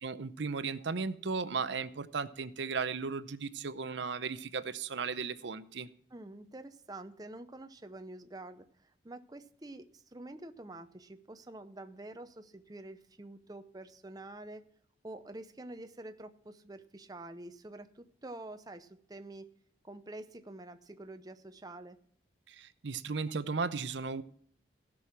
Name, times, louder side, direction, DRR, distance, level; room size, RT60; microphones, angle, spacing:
voice 1, 0.0-5.9 22.5-24.2, right 4 dB, 70° right, 13 dB, 0.7 m, -36 dB
voice 2, 6.1-14.7 15.0-19.5 19.8-22.0, right 2 dB, 20° right, 9 dB, 0.6 m, -47 dB
16.0 x 6.2 x 6.0 m, 0.63 s
head